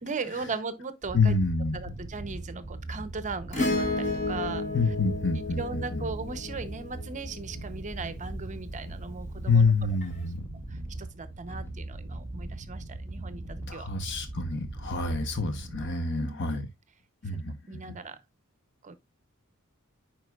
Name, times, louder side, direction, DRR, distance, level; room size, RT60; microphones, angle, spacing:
voice 1, 0.0-1.3 1.7-4.9 5.5-9.7 10.7-13.9 16.2-16.4 17.3-17.4 17.7-18.2 18.8-18.9, right 4 dB, 35° right, 0.7 m, -38 dB
sound 1, 1.0-16.1, right 2 dB, 15° left, 2.4 m, -40 dB
voice 2, 1.1-1.8 4.7-6.1 9.5-10.4 13.7-16.6 17.2-17.8, left 4 dB, 55° left, 0.9 m, -27 dB
Acoustic guitar / Strum, 3.5-8.1 10.0-10.1, left 2 dB, 35° left, 1.8 m, -32 dB
9.5 x 4.5 x 2.3 m
head